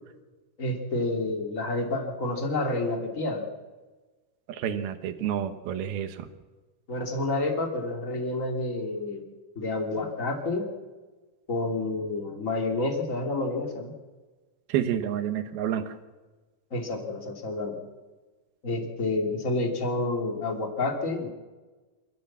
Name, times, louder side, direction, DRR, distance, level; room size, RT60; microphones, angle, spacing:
voice 1, 0.6-3.5 6.9-9.3 9.5-10.7 11.5-13.9 16.7-17.8 18.6-21.3, left 2 dB, 25° left, 3 dB, 2.7 m, -29 dB
voice 2, 4.5-6.3 14.7-15.9, right 10 dB, 90° right, 9 dB, 3.2 m, -29 dB
27.0 x 15.0 x 7.4 m, 1.3 s
omnidirectional pair, 4.2 m